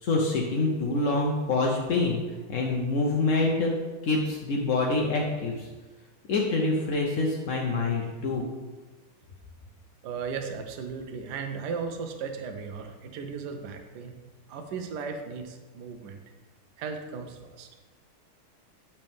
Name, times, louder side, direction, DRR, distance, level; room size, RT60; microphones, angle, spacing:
voice 1, 0.0-2.2 2.5-3.7 4.0-5.7 6.3-8.5, left 3 dB, 65° left, -1 dB, 0.7 m, -26 dB
voice 2, 10.0-14.1 14.5-16.2 16.8-17.7, right 5 dB, 65° right, 5 dB, 1.1 m, -36 dB
7.9 x 5.7 x 3.5 m, 1.3 s
omnidirectional pair, 2.3 m